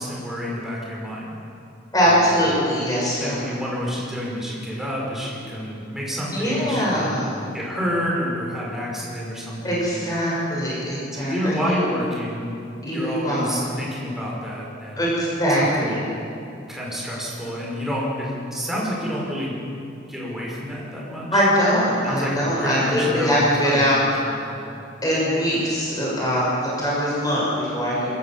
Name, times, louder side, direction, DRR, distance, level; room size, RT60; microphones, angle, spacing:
voice 1, 0.0-1.3 2.0-2.2 3.2-7.2 7.5-9.8 11.1-12.4 12.9-15.0 15.6-16.0 16.7-19.6 20.1-21.4 22.0-23.8 24.2-24.6, equal, ahead, -5 dB, 5.1 m, -28 dB
voice 2, 1.9-3.5 6.3-7.3 9.6-11.8 12.8-13.7 15.0-16.0 21.3-24.0 25.0-28.1, equal, 20° left, -6 dB, 6.2 m, -22 dB
26.0 x 14.0 x 7.4 m, 2.6 s
head